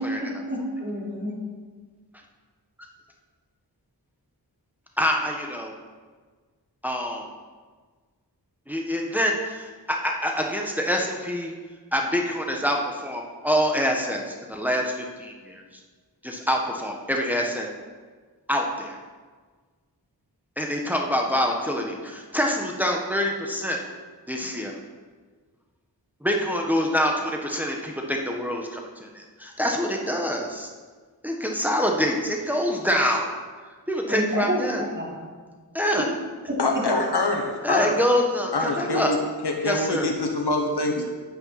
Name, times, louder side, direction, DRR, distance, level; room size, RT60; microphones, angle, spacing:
voice 1, 0.0-1.3 34.1-35.2, equal, 30° right, -5 dB, 4.0 m, -28 dB
voice 2, 5.0-5.7 6.8-7.3 8.7-11.5 11.9-15.6 16.2-17.7 18.5-19.0 20.6-23.8 24.3-24.7 26.2-30.7 31.2-33.3 33.9-34.8 35.7-36.1 37.6-39.1 39.6-40.1, equal, 5° right, 1 dB, 1.5 m, -26 dB
voice 3, 36.6-38.0 38.5-41.0, left 2 dB, 85° left, 2 dB, 1.2 m, -25 dB
8.9 x 8.9 x 5.9 m, 1.5 s
wide cardioid pair, 45°, 39 cm